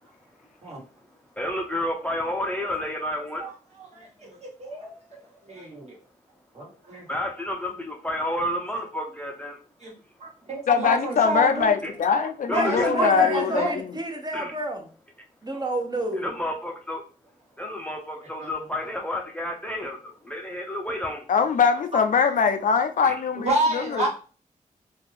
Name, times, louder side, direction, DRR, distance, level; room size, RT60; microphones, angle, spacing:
voice 1, 1.4-3.5 7.1-9.6 11.6-11.9 12.5-13.1 14.3-14.5 16.2-17.0 17.6-21.2 23.0-23.2, left 1 dB, 10° left, 0.5 m, -30 dB
voice 2, 3.9-5.2 5.5-6.0 6.5-7.0 9.8-9.9 10.5-11.7 12.5-13.7 18.4-18.5 23.3-24.1, right 2 dB, 45° right, 1.4 m, -29 dB
voice 3, 10.7-13.9 21.3-24.1, left 6 dB, 60° left, 0.4 m, -22 dB
voice 4, 12.5-14.9 15.4-16.3, right 1 dB, 30° right, 0.8 m, -30 dB
2.5 x 2.3 x 3.3 m
cardioid pair, 60°, 15 cm